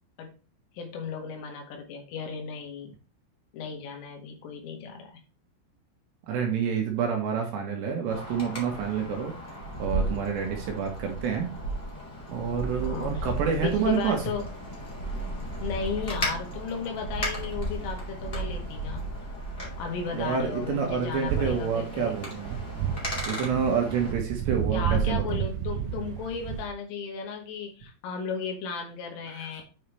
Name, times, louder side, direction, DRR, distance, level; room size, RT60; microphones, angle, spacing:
voice 1, 0.8-2.9 3.5-5.2 12.8-13.3 13.6-14.5 15.6-19.1 19.8-22.1 24.7-29.6, left 5 dB, 75° left, 1 dB, 4.3 m, -35 dB
voice 2, 6.3-9.3 9.8-11.5 12.3-14.2 20.1-22.6 23.3-25.4 29.3-29.6, right 6 dB, 70° right, 2 dB, 3.1 m, -28 dB
Wind, 8.1-24.1, right 1 dB, 45° left, 0.7 m, -35 dB
sound 1, 21.3-26.7, right 8 dB, 90° right, 2.4 m, -31 dB
9.0 x 5.5 x 3.4 m, 0.33 s
omnidirectional pair, 6.0 m